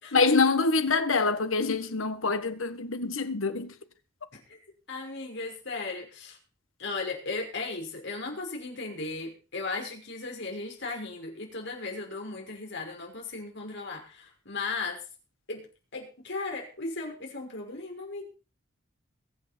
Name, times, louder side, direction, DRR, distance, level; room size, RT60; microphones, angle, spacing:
voice 1, 0.1-3.7, left 4 dB, 85° left, 1.6 m, -25 dB
voice 2, 4.9-6.4 6.8-15.0 15.5-15.6 15.9-18.2, left 3 dB, 60° left, 5.6 m, -36 dB
22.0 x 9.0 x 4.5 m
head